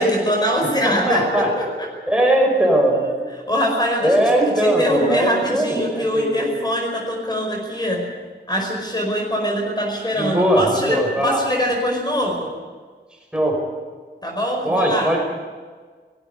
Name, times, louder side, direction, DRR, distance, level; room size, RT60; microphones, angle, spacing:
voice 1, 0.0-1.9 3.0-3.2 3.5-8.1 8.5-12.5 14.2-15.1, equal, 25° left, 0 dB, 5.1 m, -23 dB
voice 2, 0.8-1.5 2.1-3.0 4.0-6.6 10.2-11.4 13.3-13.6 14.6-15.2, right 1 dB, 5° right, 0 dB, 5.8 m, -19 dB
18.5 x 15.5 x 9.6 m, 1.5 s
wide cardioid pair, 105°, 18 cm